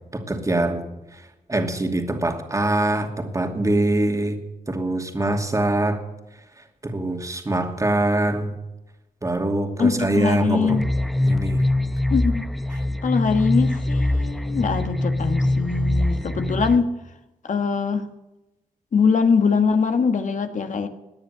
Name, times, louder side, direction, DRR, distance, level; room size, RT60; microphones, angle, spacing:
voice 1, 0.1-0.8 1.1-4.4 4.7-6.0 6.6-8.5 9.2-10.8 11.2-11.6 14.5-14.7 16.3-16.4, right 1 dB, 20° right, 4 dB, 2.5 m, -24 dB
voice 2, 9.8-10.8 12.1-12.5 13.0-16.9 17.4-18.1 18.9-20.9, left 5 dB, 55° left, 7 dB, 1.6 m, -22 dB
sound 1, 10.7-16.8, left 1 dB, ahead, 0.9 m, -23 dB
18.0 x 9.9 x 6.8 m, 1.0 s
cardioid pair, 80°, 16 cm